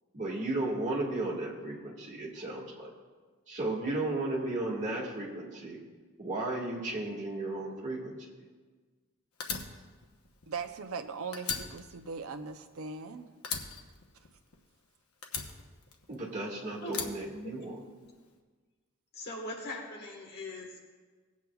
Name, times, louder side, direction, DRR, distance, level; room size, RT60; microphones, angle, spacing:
voice 1, 0.1-2.9 3.5-5.8 6.2-8.1 16.1-17.8, right 2 dB, 35° right, -3 dB, 1.9 m, -34 dB
Fire, 9.4-11.0 11.3-13.1 13.4-14.8 15.2-16.4 16.9-18.1, left 6 dB, 85° left, 1.0 m, -39 dB
voice 2, 10.5-13.3, right 5 dB, 70° right, 7 dB, 0.7 m, -39 dB
voice 3, 17.4-17.8 19.1-20.8, left 1 dB, 50° left, 0 dB, 1.4 m, -41 dB
18.0 x 8.3 x 2.3 m, 1.4 s
head